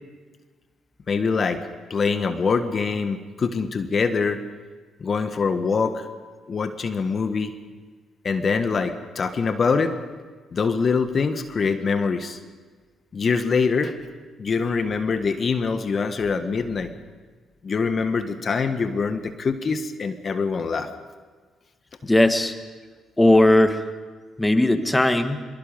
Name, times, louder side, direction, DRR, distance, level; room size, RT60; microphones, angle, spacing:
voice 1, 1.1-1.6 1.9-4.4 5.0-6.1 6.5-7.5 8.2-10.0 10.5-12.4 13.1-13.9 14.4-16.9 17.6-20.9, left 5 dB, 50° left, 9 dB, 1.6 m, -24 dB
voice 2, 22.1-22.5 23.2-23.8 24.4-25.4, left 1 dB, 15° left, 8 dB, 1.7 m, -17 dB
24.5 x 23.0 x 5.4 m, 1.4 s
hypercardioid pair, 55°, 0 cm